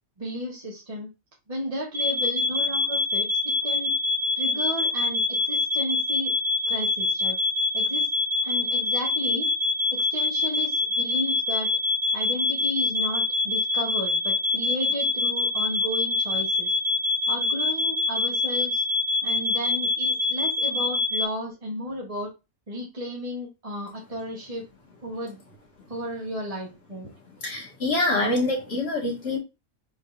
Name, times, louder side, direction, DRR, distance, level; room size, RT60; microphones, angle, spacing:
voice 1, 0.2-1.1 1.5-3.3 3.6-3.9 4.4-6.3 6.7-7.4 7.7-8.1 8.4-9.5 9.9-11.7 12.1-16.7 17.3-18.8 19.2-22.3 22.7-24.6 25.0-25.4 25.9-27.1, equal, 30° right, 1.0 m, -33 dB
sound 1, 1.9-21.3, left 2 dB, 60° right, 0.3 m, -25 dB
voice 2, 27.4-29.4, left 2 dB, 45° left, 1.8 m, -25 dB
4.6 x 3.6 x 2.4 m
omnidirectional pair, 1.5 m